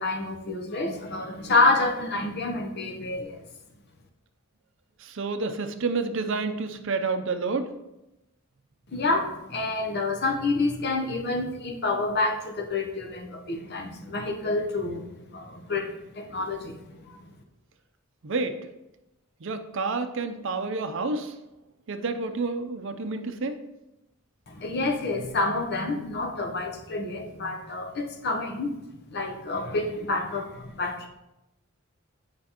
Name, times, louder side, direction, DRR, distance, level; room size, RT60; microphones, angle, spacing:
voice 1, 0.0-3.4 8.9-17.3 24.5-28.7 29.1-31.1, left 2 dB, 50° left, 3 dB, 0.9 m, -28 dB
voice 2, 5.0-7.7 18.2-18.6 19.4-21.3 21.9-23.5, right 3 dB, 60° right, 8 dB, 0.6 m, -29 dB
8.6 x 5.1 x 3.0 m, 0.93 s
head